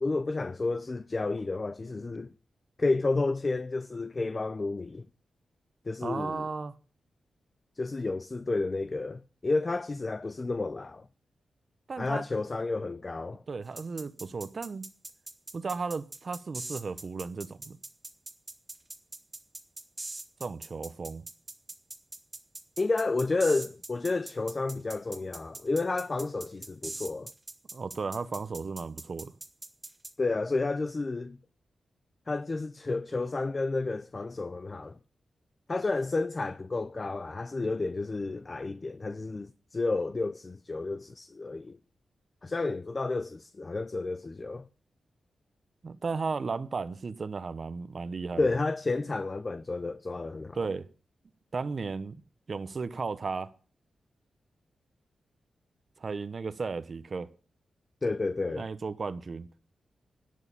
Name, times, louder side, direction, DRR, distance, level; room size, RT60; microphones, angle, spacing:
voice 1, 0.0-2.3 2.8-5.1 5.9-6.5 7.8-11.1 12.0-13.4 22.8-27.3 30.2-31.4 32.3-35.0 35.7-41.8 42.4-44.7 48.4-50.6 58.0-58.6, left 3 dB, 35° left, 0.6 m, -31 dB
voice 2, 6.0-6.7 11.9-12.2 13.5-14.8 15.5-17.8 20.4-21.2 27.7-29.3 45.8-48.5 50.5-50.9 51.5-52.2 52.5-53.5 56.0-57.3 58.5-59.5, right 4 dB, 50° right, 0.8 m, -35 dB
sound 1, 13.8-30.1, right 2 dB, 30° right, 1.9 m, -42 dB
11.0 x 6.4 x 8.7 m
cardioid pair, 65°, 0 cm